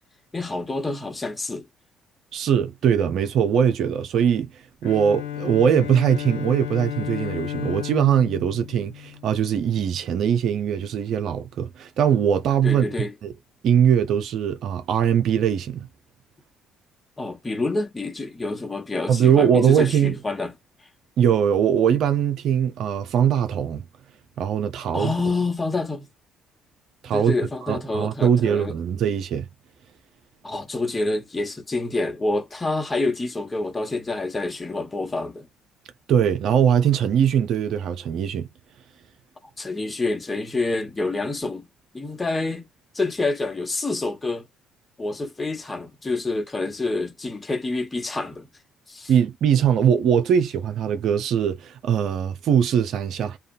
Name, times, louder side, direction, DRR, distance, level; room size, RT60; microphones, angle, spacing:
voice 1, 0.3-1.6 12.6-13.1 17.2-20.5 24.9-26.0 27.1-28.7 30.4-35.5 39.6-41.7 41.9-42.7 42.9-44.4 45.0-48.5 48.9-49.1, left 2 dB, 20° left, 1.0 m, -27 dB
voice 2, 2.3-4.5 4.8-12.8 13.2-13.3 13.6-15.9 19.1-20.1 21.2-23.8 24.4-25.1 27.0-27.3 27.6-29.5 36.1-38.5 49.1-53.4, right 8 dB, 65° right, 0.6 m, -21 dB
Bowed string instrument, 4.8-9.7, left 11 dB, 90° left, 0.5 m, -33 dB
2.5 x 2.3 x 2.5 m
hypercardioid pair, 60°, 0 cm